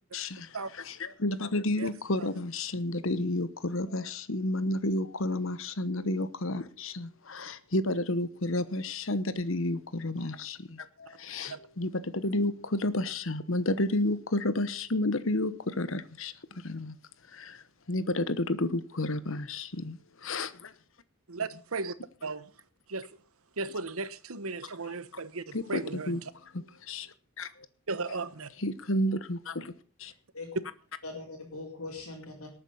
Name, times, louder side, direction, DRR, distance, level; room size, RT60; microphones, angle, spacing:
voice 1, 0.1-0.6 0.9-16.3 16.6-16.9 17.3-17.6 17.9-20.7 25.5-25.8 26.1-26.2 26.5-27.5 28.6-29.7 30.0-30.1, left 1 dB, 65° left, 1.1 m, -31 dB
voice 2, 21.3-21.9 22.2-22.5 22.9-23.1 23.6-26.3 27.9-28.5, right 3 dB, 75° right, 1.1 m, -36 dB
voice 3, 30.0-30.5 31.0-32.5, left 3 dB, 85° left, 4.7 m, -41 dB
19.0 x 9.1 x 5.6 m
head